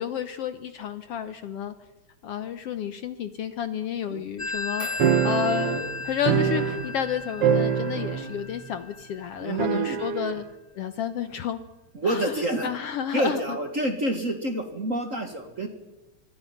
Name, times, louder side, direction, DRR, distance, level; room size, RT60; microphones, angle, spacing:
voice 1, 0.0-1.7 2.2-10.5 10.8-11.6 12.1-12.3 12.6-13.6, left 8 dB, 65° left, 11 dB, 1.6 m, -31 dB
Telephone, 4.4-9.7, left 3 dB, 40° left, 0.4 m, -36 dB
sound 1, 5.0-7.1 7.4-8.4 8.7-8.8 9.6-10.4, right 8 dB, 60° right, 2.0 m, -24 dB
voice 2, 9.4-10.0 11.9-12.7 13.1-15.7, right 1 dB, 35° right, 6 dB, 1.6 m, -28 dB
25.5 x 22.0 x 5.8 m, 1.1 s
omnidirectional pair, 3.4 m